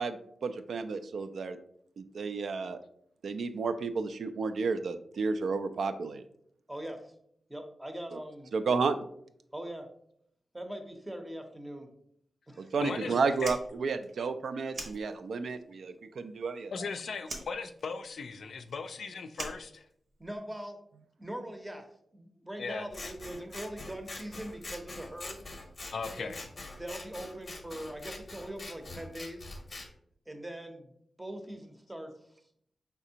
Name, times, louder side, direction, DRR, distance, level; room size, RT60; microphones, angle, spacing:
voice 1, 0.0-1.6 2.0-2.8 3.2-6.2 8.1-8.2 8.5-9.0 12.6-16.7, right 4 dB, 85° right, 9 dB, 0.3 m, -32 dB
voice 2, 6.7-7.1 7.5-8.5 9.5-9.9 10.5-11.9 12.5-12.7 20.2-20.8 21.2-21.8 22.1-25.4 26.2-26.4 26.8-29.4 30.3-30.9 31.2-32.1, right 1 dB, 10° right, 5 dB, 0.6 m, -41 dB
voice 3, 12.8-13.5 16.7-19.9 22.6-22.9 25.9-26.5, left 5 dB, 75° left, 8 dB, 0.3 m, -38 dB
Fire, 13.3-15.6 15.9-16.9 17.2-20.4, right 2 dB, 60° right, 0.8 m, -44 dB
Scissors, 22.9-29.9, left 2 dB, 35° left, 0.6 m, -44 dB
4.8 x 3.4 x 2.8 m, 0.69 s
wide cardioid pair, 140°, 0 cm